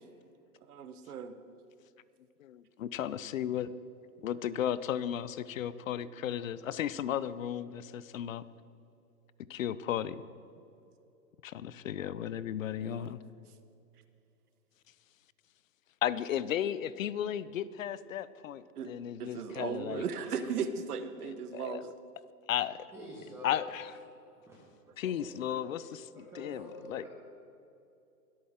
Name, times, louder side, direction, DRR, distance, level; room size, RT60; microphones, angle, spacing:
voice 1, 0.7-1.3 12.7-13.2 18.8-18.9 19.2-21.8, right 6 dB, 70° right, 10 dB, 1.2 m, -37 dB
voice 2, 2.4-3.7 4.2-8.4 9.5-10.2 11.4-13.2 16.0-20.0 21.2-21.8 22.5-22.9 23.4-23.9 25.0-25.8 26.2-27.0, left 10 dB, 60° left, 17 dB, 0.6 m, -35 dB
voice 3, 22.9-23.6 24.5-24.6 24.9-27.1, left 1 dB, 5° right, -6 dB, 1.2 m, -48 dB
22.5 x 8.8 x 3.6 m, 2.7 s
hypercardioid pair, 155°, 47 cm